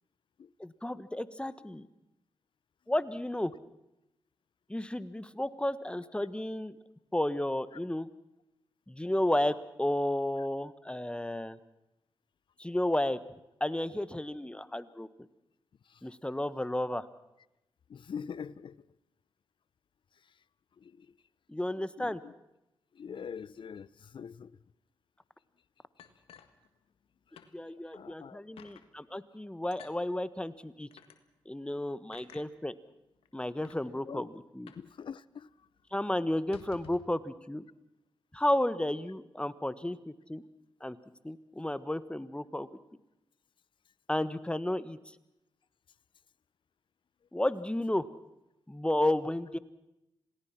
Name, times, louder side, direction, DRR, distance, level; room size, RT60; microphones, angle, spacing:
voice 1, 0.6-1.9 2.9-3.5 4.7-6.8 7.1-8.1 8.9-11.6 12.6-13.2 13.6-15.1 16.0-17.0 21.5-22.2 27.5-30.9 31.4-32.7 33.3-34.7 35.9-37.6 38.3-40.4 40.8-41.0 41.2-42.7 44.1-45.0 47.3-48.1 48.7-49.6, left 1 dB, 10° left, 1.5 m, -32 dB
voice 2, 17.9-18.9 20.8-21.1 22.0-22.3 22.9-24.6 27.9-28.4 34.1-34.3 34.7-35.5, left 7 dB, 60° left, 0.7 m, -44 dB
sound 1, 26.0-27.1 27.4-27.5 27.9-28.0 28.6-28.9 29.7-30.0 30.9-31.2 32.1-32.5 33.2-33.3 33.6-33.8 34.7-34.9 35.2-35.3 35.6-35.8 36.4-37.1, left 8 dB, 80° left, 1.5 m, -53 dB
27.0 x 18.0 x 6.1 m
supercardioid pair, 40°, 9 cm